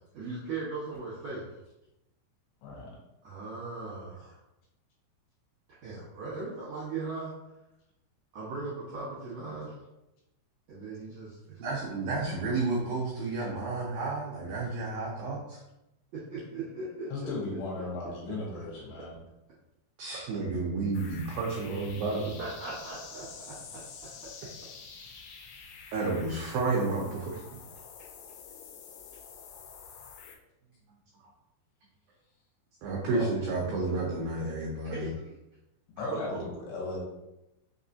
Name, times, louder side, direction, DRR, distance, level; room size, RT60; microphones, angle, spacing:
voice 1, 0.1-1.5 3.2-4.4 5.8-7.3 8.3-9.7 10.7-11.8 16.1-17.3 22.4-23.6 33.1-33.2 34.9-35.1 36.1-36.4, right 3 dB, 75° right, -9 dB, 1.6 m, -38 dB
voice 2, 11.6-15.6 20.0-22.3 25.9-27.4 32.8-35.1, right 3 dB, 90° right, -3 dB, 2.0 m, -31 dB
voice 3, 17.1-19.2 36.0-37.0, left 2 dB, 70° left, -3 dB, 3.0 m, -36 dB
sound 1, 20.9-30.4, left 6 dB, 90° left, 3.0 m, -48 dB
6.4 x 3.0 x 2.7 m, 0.91 s
omnidirectional pair, 5.1 m